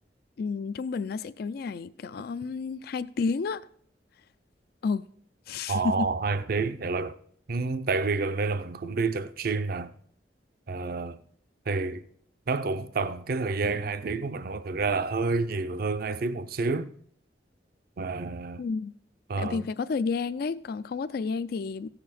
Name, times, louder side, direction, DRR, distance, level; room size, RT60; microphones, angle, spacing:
voice 1, 0.4-3.7 4.8-5.0 5.5-6.1 18.6-18.9 19.4-21.9, left 4 dB, 60° left, 0.4 m, -31 dB
voice 2, 5.7-7.1 7.5-9.9 10.7-11.2 11.7-12.0 12.5-16.9 18.0-18.6 19.3-19.7, right 4 dB, 55° right, 0.6 m, -29 dB
16.0 x 6.7 x 4.2 m
head